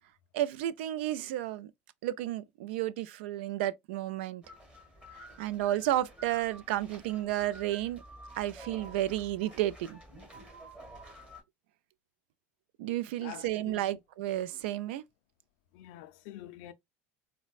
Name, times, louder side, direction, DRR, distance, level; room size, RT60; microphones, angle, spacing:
voice 1, 0.3-1.7 2.0-4.4 5.1-8.0 8.4-10.0 12.8-15.0, right 13 dB, 85° right, 0.3 m, -32 dB
sound 1, 4.4-11.4, right 1 dB, 20° right, 1.4 m, -51 dB
voice 2, 13.2-13.8 15.7-16.7, left 13 dB, 70° left, 0.4 m, -46 dB
4.1 x 2.1 x 2.3 m
supercardioid pair, 130°, 6 cm